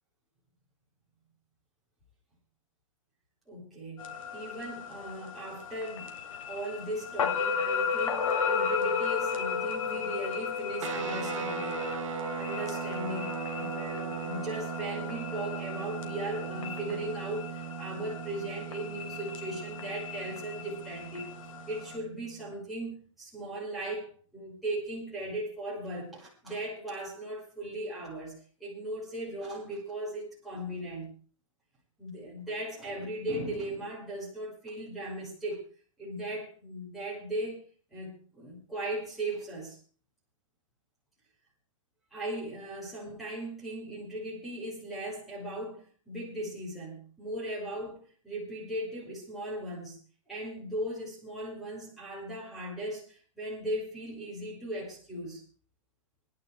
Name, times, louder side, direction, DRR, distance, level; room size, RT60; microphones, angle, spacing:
voice 1, 3.5-11.9 12.4-21.3 21.7-28.3 28.6-31.1 32.0-35.6 36.0-39.8 42.1-50.0 50.3-55.4, right 1 dB, ahead, -8 dB, 5.7 m, -38 dB
sound 1, 4.0-22.0, left 6 dB, 85° left, 2.8 m, -35 dB
sound 2, 10.8-22.5, right 12 dB, 70° right, 0.9 m, -39 dB
25.5 x 11.0 x 3.4 m, 0.38 s
hypercardioid pair, 165°, 17 cm